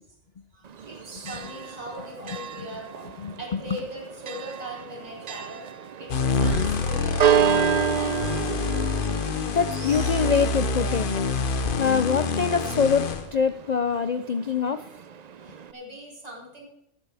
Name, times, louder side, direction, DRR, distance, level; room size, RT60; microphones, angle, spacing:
voice 1, 0.5-5.6 6.0-8.4 15.4-16.6, equal, 30° right, -3 dB, 3.8 m, -40 dB
Church bell, 0.6-15.7, right 8 dB, 75° right, 0.3 m, -30 dB
voice 2, 3.2-3.6 9.5-11.1 11.8-14.9, left 6 dB, 80° left, 11 dB, 0.3 m, -24 dB
sound 1, 6.1-13.3, left 4 dB, 45° left, 0.9 m, -26 dB
15.0 x 12.0 x 3.4 m, 0.81 s
omnidirectional pair, 1.4 m